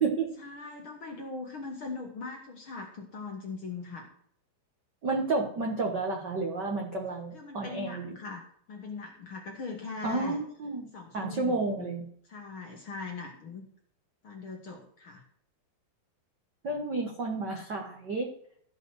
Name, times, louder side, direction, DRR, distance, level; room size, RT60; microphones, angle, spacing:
voice 1, 0.4-4.1 7.3-10.4 10.9-11.9 12.2-13.7 14.2-15.2, left 4 dB, 50° left, 2 dB, 1.7 m, -40 dB
voice 2, 5.0-8.1 10.0-10.9 11.1-12.1 16.6-18.3, right 3 dB, 80° right, 1 dB, 0.9 m, -31 dB
15.0 x 5.4 x 6.3 m, 0.63 s
omnidirectional pair, 4.4 m